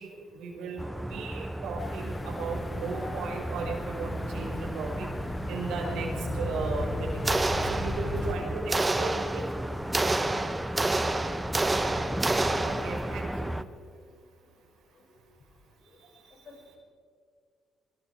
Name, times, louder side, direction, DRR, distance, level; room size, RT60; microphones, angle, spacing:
voice 1, 0.0-5.1 5.5-9.5 12.6-13.6 15.9-16.5, right 4 dB, 85° right, 1 dB, 5.1 m, -36 dB
sound 1, 0.8-13.6, equal, 5° right, 1.1 m, -35 dB
sound 2, 1.8-8.4, left 1 dB, 30° left, 2.1 m, -36 dB
sound 3, 7.2-8.3 8.7-13.2, right 2 dB, 20° right, 1.4 m, -29 dB
voice 2, 16.4-16.8, left 3 dB, 55° left, 1 dB, 6.7 m, -53 dB
24.5 x 23.5 x 4.8 m, 2.1 s
cardioid pair, 90°, 0 cm